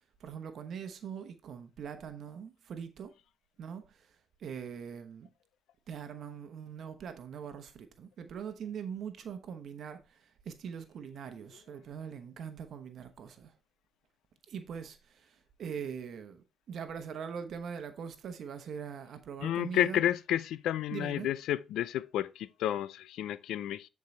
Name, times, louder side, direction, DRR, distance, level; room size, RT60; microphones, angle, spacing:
voice 1, 0.2-3.1 3.6-4.1 4.4-5.3 5.9-13.5 14.5-20.0 20.9-21.3, right 7 dB, 65° right, 1.0 m, -42 dB
voice 2, 19.4-23.9, left 12 dB, 85° left, 0.4 m, -31 dB
9.5 x 4.7 x 3.2 m
cardioid pair, 90°, 0 cm